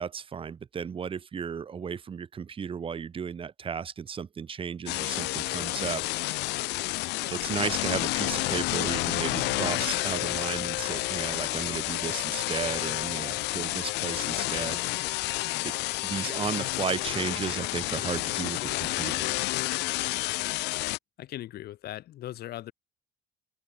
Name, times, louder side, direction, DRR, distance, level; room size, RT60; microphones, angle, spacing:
voice 1, 0.0-6.0 7.3-14.8 15.6-15.7 16.0-19.3, right 6 dB, 30° right, 1.0 m, -34 dB
sound 1, 4.9-21.0, left 21 dB, 90° left, 0.9 m, -30 dB
sound 2, 7.3-16.7, right 19 dB, 85° right, 6.8 m, -51 dB
voice 2, 21.2-22.7, left 14 dB, 70° left, 1.9 m, -39 dB
open air
cardioid pair, 110°, 17 cm